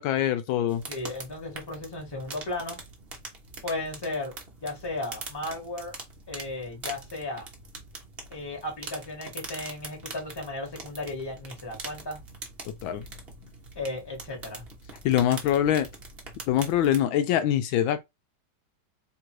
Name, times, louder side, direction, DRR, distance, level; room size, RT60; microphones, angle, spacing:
voice 1, 0.0-0.8 12.8-13.0 15.0-15.9 16.5-18.0, left 11 dB, 80° left, 1.3 m, -24 dB
sound 1, 0.7-17.0, right 3 dB, 40° right, 0.9 m, -43 dB
voice 2, 0.9-2.8 3.6-4.3 4.6-5.9 6.3-7.5 8.3-12.2 13.7-14.6, left 2 dB, 15° left, 1.2 m, -35 dB
3.5 x 2.5 x 4.5 m
omnidirectional pair, 2.2 m